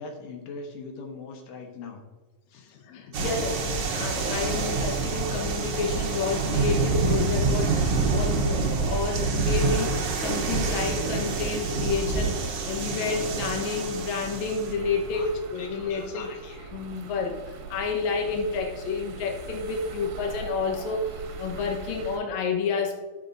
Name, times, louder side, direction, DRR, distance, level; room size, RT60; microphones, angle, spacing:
voice 1, 0.0-2.0 2.5-3.1 15.1-16.7, left 4 dB, 85° left, 3 dB, 2.7 m, -42 dB
voice 2, 2.9-16.3 16.7-17.3 17.7-23.0, left 4 dB, 65° left, 2 dB, 2.3 m, -30 dB
sound 1, 3.1-14.7, right 4 dB, 60° right, 1.7 m, -27 dB
sound 2, 8.0-22.2, right 6 dB, 90° right, 2.7 m, -42 dB
13.5 x 6.6 x 2.6 m, 1.3 s
omnidirectional pair, 3.7 m